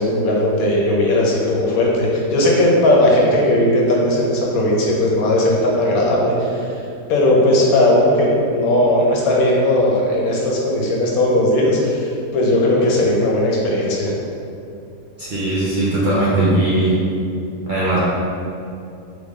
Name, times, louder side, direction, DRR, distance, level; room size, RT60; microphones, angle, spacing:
voice 1, 0.0-6.7 7.1-14.1, left 1 dB, 75° left, -2 dB, 1.2 m, -17 dB
voice 2, 15.2-17.0 17.7-18.0, right 1 dB, 50° right, -8 dB, 0.6 m, -18 dB
3.7 x 3.3 x 3.6 m, 2.5 s
omnidirectional pair, 1.5 m